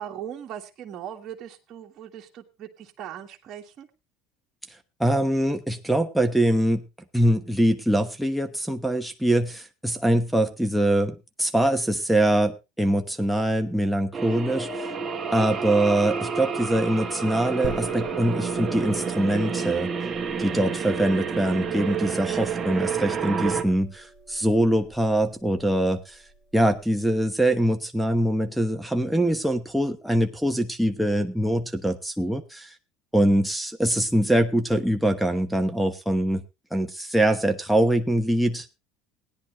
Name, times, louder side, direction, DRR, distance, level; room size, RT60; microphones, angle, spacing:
voice 1, 0.0-3.9, right 10 dB, 45° right, 1 dB, 1.8 m, -39 dB
voice 2, 5.0-6.8 7.1-14.9 15.3-19.9 20.4-26.2 26.5-32.7 33.1-36.4 36.7-38.7, right 1 dB, ahead, 4 dB, 1.0 m, -23 dB
sound 1, 14.1-23.6, right 6 dB, 25° right, 1.9 m, -29 dB
sound 2, 17.6-27.0, right 1 dB, 50° left, 4.9 m, -43 dB
17.0 x 10.0 x 3.1 m, 0.25 s
supercardioid pair, 110°, 0 cm